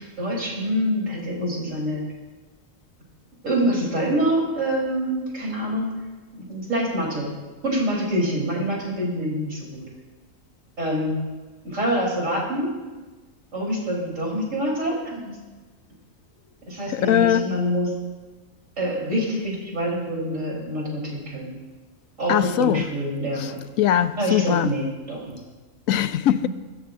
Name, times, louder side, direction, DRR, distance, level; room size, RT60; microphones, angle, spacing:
voice 1, 0.0-2.0 3.4-5.9 6.3-7.3 7.6-9.9 10.8-11.2 11.6-12.7 13.5-15.4 16.7-17.9 18.8-21.5 22.2-23.6 24.2-25.4, equal, 70° right, 4.7 m, -26 dB
voice 2, 16.9-17.5 22.3-22.9 23.4-23.5 23.8-24.7 25.9-26.5, left 11 dB, 90° left, 1.0 m, -21 dB
23.5 x 13.5 x 2.7 m
omnidirectional pair, 1.4 m